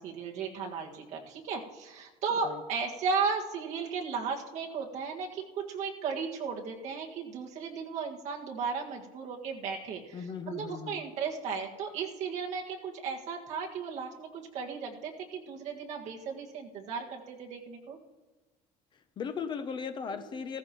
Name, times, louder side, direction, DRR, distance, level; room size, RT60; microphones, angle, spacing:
voice 1, 0.0-10.2 10.5-18.0 20.1-20.3, right 5 dB, 45° right, -1 dB, 1.8 m, -35 dB
voice 2, 10.1-11.0 18.9-20.6, left 6 dB, 30° left, 10 dB, 0.6 m, -37 dB
16.5 x 14.5 x 3.0 m, 1.2 s
cardioid pair, 170°, 16 cm